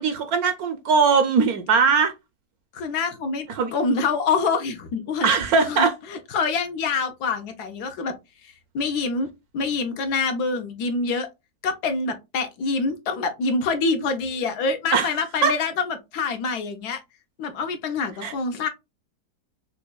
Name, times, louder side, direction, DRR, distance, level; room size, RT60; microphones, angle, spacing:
voice 1, 0.0-2.1 3.5-3.7 5.2-5.9 14.9-15.1 15.4-15.5 18.2-18.3, right 5 dB, 70° right, 0.9 m, -20 dB
voice 2, 2.7-5.3 5.7-8.1 8.4-9.3 9.5-11.3 11.6-17.0 17.4-18.7, left 4 dB, 70° left, 1.1 m, -26 dB
5.4 x 2.2 x 2.2 m
omnidirectional pair, 1.9 m